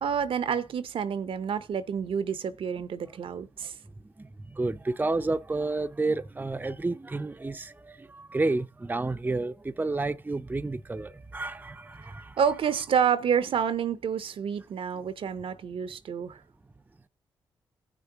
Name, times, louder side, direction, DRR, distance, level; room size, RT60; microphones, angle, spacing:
voice 1, 0.0-3.7 12.4-16.4, right 7 dB, 60° right, 0.6 m, -28 dB
voice 2, 4.2-12.4, right 3 dB, 15° right, 0.5 m, -30 dB
16.5 x 6.1 x 2.8 m
hypercardioid pair, 40°, 10 cm